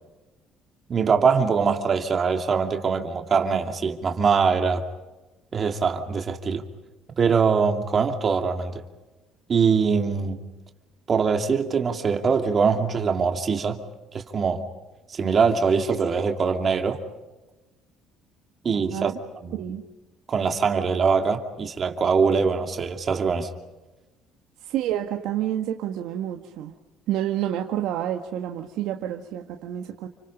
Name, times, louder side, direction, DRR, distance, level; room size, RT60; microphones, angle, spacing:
voice 1, 0.9-4.8 5.5-6.6 7.2-8.8 9.5-10.4 11.1-13.8 14.1-14.6 15.1-17.0 18.6-19.1 19.4-19.6 20.3-23.5, right 5 dB, 40° right, 2.7 m, -23 dB
voice 2, 19.5-19.8 24.6-26.7 27.1-30.1, right 11 dB, 75° right, 1.7 m, -29 dB
30.0 x 26.0 x 5.5 m
supercardioid pair, 80°, 0 cm